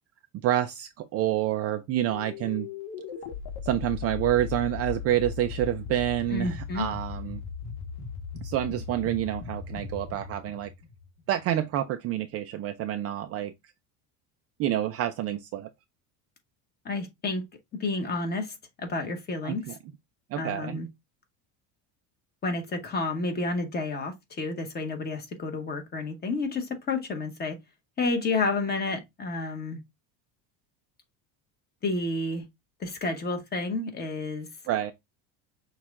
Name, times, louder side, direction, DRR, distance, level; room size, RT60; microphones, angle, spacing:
voice 1, 0.4-2.7 3.6-7.4 8.4-10.7 11.3-13.5 14.6-15.7 19.4-19.8 20.3-20.8 34.7-34.9, right 12 dB, 40° right, 0.4 m, -28 dB
sound 1, 2.1-11.4, left 6 dB, 60° left, 1.3 m, -38 dB
voice 2, 6.3-6.9 16.8-17.4 17.7-19.7 20.4-20.9 22.4-27.6 28.0-29.8 31.8-32.4 32.8-34.5, left 3 dB, 25° left, 1.2 m, -30 dB
6.2 x 2.4 x 3.6 m
cardioid pair, 150°, 40 cm